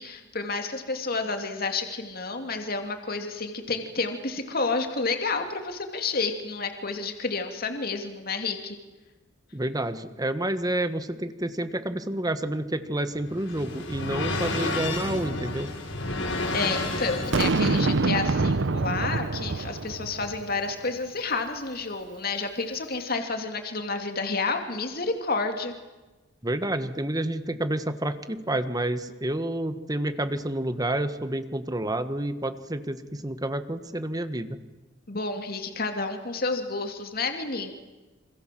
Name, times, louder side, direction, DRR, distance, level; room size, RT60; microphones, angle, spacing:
voice 1, 0.0-8.8 16.5-25.7 35.1-37.7, left 3 dB, 50° left, 5 dB, 2.7 m, -30 dB
voice 2, 9.5-15.7 26.4-34.6, right 1 dB, 20° right, 10 dB, 1.5 m, -29 dB
sound 1, 12.9-17.9, left 2 dB, 80° left, 6.7 m, -31 dB
Boom, 17.3-20.6, right 3 dB, 65° right, 0.8 m, -25 dB
28.0 x 26.5 x 7.7 m, 1.2 s
head